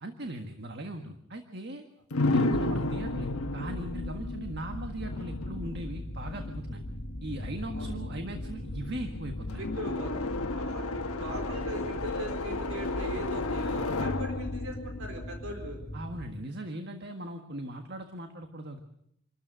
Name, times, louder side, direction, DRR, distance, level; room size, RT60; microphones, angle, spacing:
voice 1, 0.0-1.8 2.3-6.8 7.2-9.6 15.9-18.8, right 1 dB, 50° right, 5 dB, 1.6 m, -39 dB
sound 1, 2.1-15.9, left 2 dB, 85° left, 1.3 m, -33 dB
sound 2, 2.5-16.3, left 1 dB, 40° left, 1.7 m, -40 dB
voice 2, 9.5-15.8, right 1 dB, 75° right, 4 dB, 4.2 m, -40 dB
27.5 x 13.5 x 7.8 m, 0.75 s
head